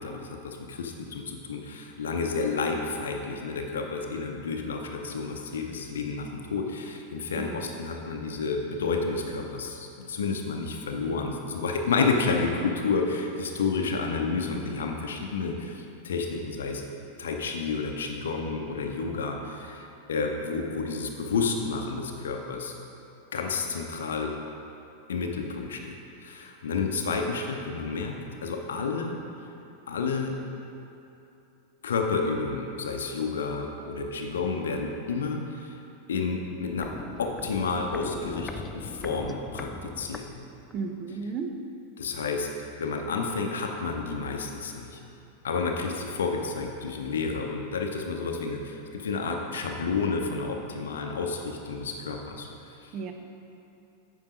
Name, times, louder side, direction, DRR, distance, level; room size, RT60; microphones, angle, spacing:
voice 1, 0.0-16.8 17.2-22.7 23.3-24.3 25.1-26.0 26.2-29.2 29.9-30.4 31.8-35.8 36.1-36.9 37.2-40.2 42.0-42.5 42.8-45.0 45.4-52.5 52.8-52.9, left 4 dB, 65° left, 2 dB, 0.7 m, -30 dB
voice 2, 7.4-7.8 40.7-41.5 52.9-53.1, right 5 dB, 35° right, 5 dB, 0.7 m, -34 dB
Walk footsteps, 36.8-40.9 41.2-41.3, left 3 dB, 15° left, 0.4 m, -41 dB
8.8 x 5.5 x 5.1 m, 2.8 s
figure-of-eight pair, 90°, 0 cm